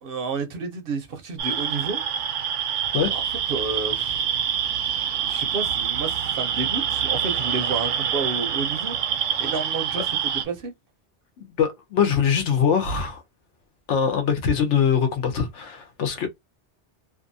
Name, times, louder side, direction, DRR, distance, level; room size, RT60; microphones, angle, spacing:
voice 1, 0.0-2.0 3.1-3.2 3.5-4.2 5.3-8.9 9.3-10.0 10.4-10.7, right 4 dB, 60° right, 0.7 m, -30 dB
sound 1, 1.4-10.4, right 8 dB, 85° right, 0.9 m, -26 dB
voice 2, 11.6-13.2 13.9-16.3, left 7 dB, 80° left, 1.0 m, -22 dB
2.6 x 2.4 x 2.6 m
omnidirectional pair, 1.2 m